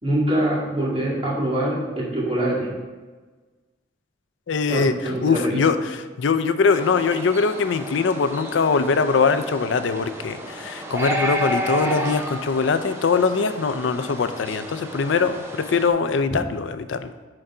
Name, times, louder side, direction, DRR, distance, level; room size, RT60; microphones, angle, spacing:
voice 1, 0.0-2.7 4.7-5.6, right 1 dB, 30° right, -6 dB, 2.2 m, -24 dB
voice 2, 4.5-5.8 6.2-17.1, left 5 dB, 85° left, 11 dB, 0.5 m, -22 dB
sound 1, 6.7-15.9, right 1 dB, 15° right, 0.7 m, -31 dB
9.8 x 3.8 x 4.7 m, 1.3 s
head